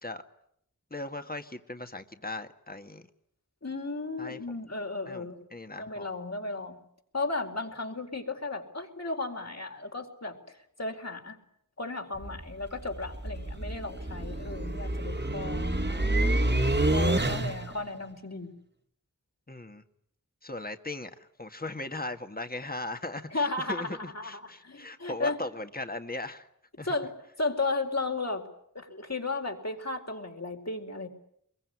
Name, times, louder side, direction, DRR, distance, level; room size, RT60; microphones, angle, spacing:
voice 1, 0.9-3.1 4.2-4.6 5.1-6.1 15.9-16.4 19.5-19.8 20.4-26.5 26.8-27.0, left 2 dB, 30° left, 7 dB, 1.9 m, -38 dB
voice 2, 3.6-5.4 5.8-6.8 7.1-11.4 11.8-15.7 16.9-18.5 23.3-25.4 26.8-28.4 28.7-31.1, left 3 dB, 55° left, 3 dB, 4.5 m, -34 dB
sound 1, 12.2-17.8, right 1 dB, 35° right, 1.8 m, -28 dB
24.5 x 22.5 x 9.7 m, 0.72 s
wide cardioid pair, 45°, 32 cm